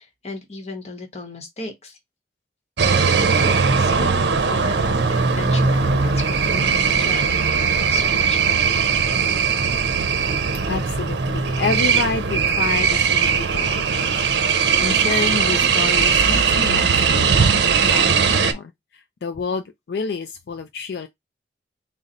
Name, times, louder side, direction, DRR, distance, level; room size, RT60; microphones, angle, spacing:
voice 1, 0.0-2.0 2.9-3.0 3.5-8.6, left 3 dB, 40° left, 0.9 m, -35 dB
sound 1, 2.8-18.5, right 5 dB, 75° right, 0.6 m, -19 dB
voice 2, 10.7-14.3 14.8-18.7 19.2-21.1, left 4 dB, 65° left, 0.4 m, -29 dB
3.8 x 2.1 x 4.0 m
head